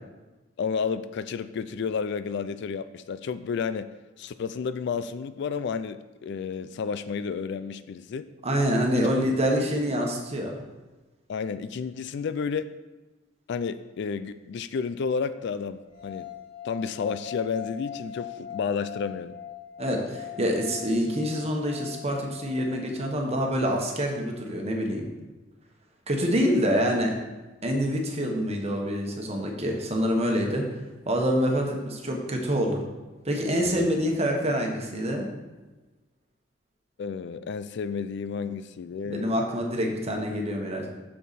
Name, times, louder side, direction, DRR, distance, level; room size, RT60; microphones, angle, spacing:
voice 1, 0.6-3.9 4.2-8.3 8.9-9.1 9.5-9.7 11.3-12.7 13.5-16.3 16.6-19.4 37.0-39.3, left 5 dB, 60° left, 13 dB, 0.4 m, -31 dB
voice 2, 8.4-10.6 19.8-25.1 26.1-27.1 27.6-30.7 31.1-32.8 33.2-35.3 39.1-40.9, equal, 35° right, 1 dB, 1.2 m, -26 dB
sound 1, 15.9-23.0, left 10 dB, 30° left, 2.4 m, -41 dB
6.9 x 6.6 x 4.2 m, 1.2 s
head